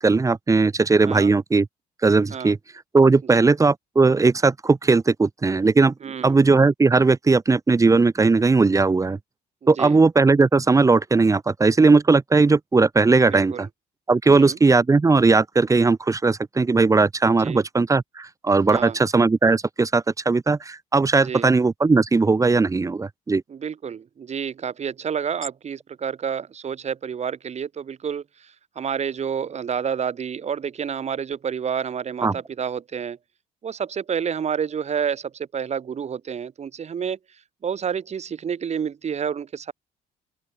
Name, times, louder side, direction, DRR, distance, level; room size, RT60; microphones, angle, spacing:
voice 1, 0.0-1.7 2.0-2.6 2.9-5.9 6.2-9.2 9.7-13.7 14.1-23.4 32.2-32.3, right 3 dB, 20° right, 1.1 m, -18 dB
voice 2, 6.0-6.4 9.6-10.0 13.2-13.7 14.3-14.6 17.4-17.6 18.7-19.0 21.2-21.5 23.5-33.2 33.6-37.2 37.6-39.7, right 7 dB, 40° right, 5.4 m, -29 dB
open air
cardioid pair, 110°, 17 cm